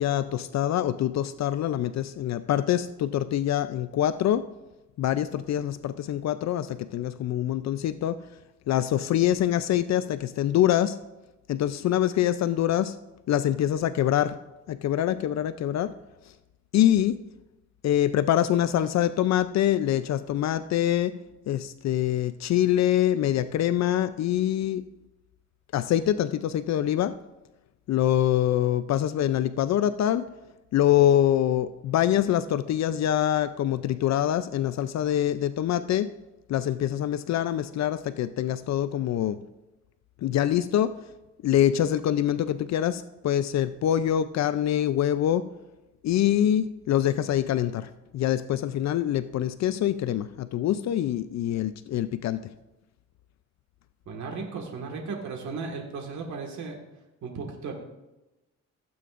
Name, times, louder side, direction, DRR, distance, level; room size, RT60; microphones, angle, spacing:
voice 1, 0.0-4.4 5.0-8.2 8.7-11.0 11.5-12.9 13.3-14.4 14.7-15.9 16.7-17.2 17.8-21.1 21.5-24.8 25.7-27.1 27.9-30.3 30.7-36.1 36.5-39.4 40.2-40.9 41.4-45.5 46.0-52.4, left 11 dB, 60° left, 13 dB, 0.5 m, -25 dB
voice 2, 54.1-56.8 57.2-57.7, right 4 dB, 70° right, 2 dB, 1.8 m, -35 dB
16.0 x 8.5 x 2.5 m, 1.0 s
cardioid pair, 90°, 30 cm